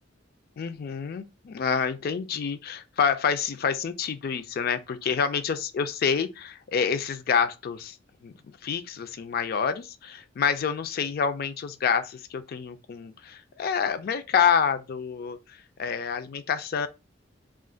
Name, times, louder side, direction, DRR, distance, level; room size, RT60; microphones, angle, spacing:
voice 1, 0.6-8.0 8.2-16.9, left 6 dB, 55° left, 0.4 m, -28 dB
2.4 x 2.4 x 3.8 m
head